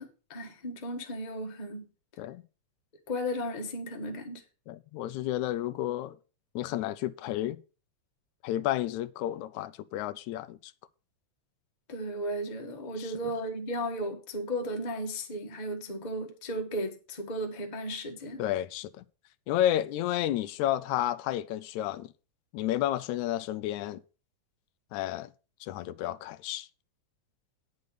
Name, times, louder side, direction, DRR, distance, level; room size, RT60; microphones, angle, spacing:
voice 1, 0.0-1.9 3.1-4.4 11.9-18.4, equal, 25° left, 1.1 m, -35 dB
voice 2, 4.7-6.2 6.6-7.6 8.4-10.7 13.0-13.1 18.4-18.9 19.5-22.1 22.5-24.0 24.9-25.3 25.6-26.7, left 13 dB, 85° left, 2.0 m, -31 dB
9.5 x 6.7 x 6.2 m
omnidirectional pair, 3.3 m